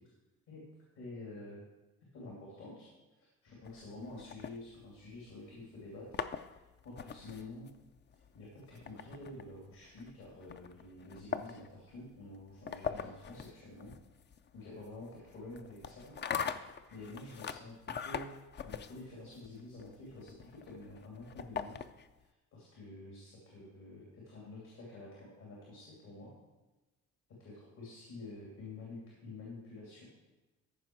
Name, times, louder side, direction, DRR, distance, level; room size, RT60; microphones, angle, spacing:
voice 1, 1.0-1.6 2.1-2.9 3.4-6.2 6.5-7.7 8.3-13.9 14.5-16.2 16.4-18.3 18.6-21.8 22.5-26.3 27.4-30.0, left 2 dB, 75° left, -4 dB, 2.9 m, -49 dB
sound 1, 3.6-5.3 5.9-22.2, left 7 dB, 35° left, 0.5 m, -43 dB
14.0 x 5.2 x 4.6 m, 1.1 s
cardioid pair, 90°, 30 cm